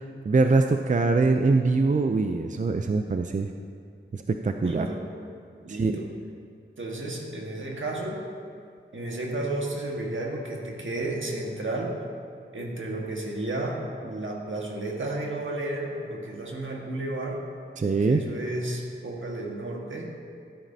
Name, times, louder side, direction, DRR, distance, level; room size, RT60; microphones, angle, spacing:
voice 1, 0.0-3.5 4.1-4.9 5.7-6.0 17.8-18.2, right 3 dB, 40° right, 5 dB, 0.4 m, -23 dB
voice 2, 4.6-5.0 5.6-6.1 6.8-8.3 8.9-12.0 12.5-17.4 18.0-20.1, right 2 dB, 75° right, -1 dB, 1.5 m, -32 dB
15.5 x 9.2 x 2.7 m, 2.3 s
wide cardioid pair, 65°, 21 cm